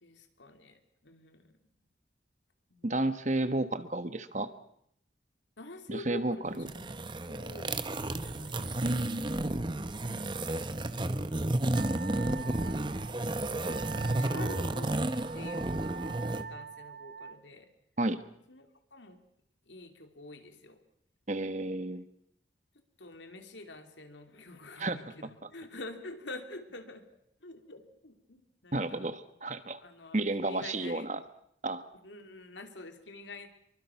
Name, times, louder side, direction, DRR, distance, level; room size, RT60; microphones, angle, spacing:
voice 1, 0.0-1.6 2.7-3.0 5.6-7.0 7.3-8.8 10.0-10.4 12.3-12.9 13.5-13.8 14.2-14.9 15.3-17.7 18.5-19.2 19.7-20.8 23.0-27.0 27.4-29.1 29.8-31.1 32.0-33.5, left 2 dB, 90° left, 6 dB, 2.8 m, -47 dB
voice 2, 2.8-4.5 5.9-6.5 8.8-9.3 18.0-18.2 21.3-22.0 24.8-25.0 28.7-29.8 30.1-31.2 31.6-31.8, right 2 dB, 40° right, 11 dB, 1.2 m, -31 dB
sound 1, 6.5-16.4, right 1 dB, 25° right, 0.9 m, -32 dB
Wind instrument woodwind instrument, 11.7-17.4, right 6 dB, 75° right, 1.4 m, -44 dB
25.5 x 23.5 x 5.9 m, 0.72 s
head